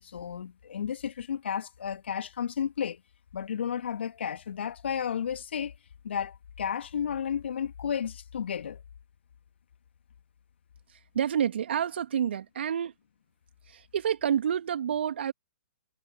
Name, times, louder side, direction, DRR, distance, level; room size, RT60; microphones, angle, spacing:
voice 1, 0.0-3.0 3.3-5.8 6.0-8.8, left 8 dB, 65° left, 2.0 m, -32 dB
voice 2, 11.1-12.9 13.7-15.3, right 8 dB, 60° right, 2.5 m, -28 dB
figure-of-eight pair, 125°, 7 cm